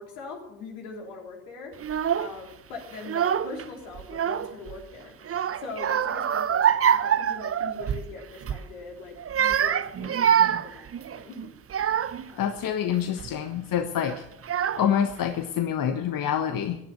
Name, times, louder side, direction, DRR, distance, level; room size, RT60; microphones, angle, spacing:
voice 1, 0.0-1.7 2.1-5.1 5.6-11.4 12.1-12.5 14.7-15.0, left 4 dB, 75° left, 1 dB, 3.7 m, -41 dB
Child speech kid speaking / Crying sobbing, 1.8-2.3 3.0-3.6 4.0-4.8 5.2-8.1 8.4-8.7 9.2-12.3 12.9-13.3 14.1-14.2 14.4-15.1, right 9 dB, 30° right, 0.8 m, -25 dB
voice 2, 12.4-14.1 14.8-16.8, left 9 dB, 50° left, 7 dB, 1.3 m, -26 dB
16.0 x 10.5 x 5.9 m, 0.84 s
hypercardioid pair, 55°, 44 cm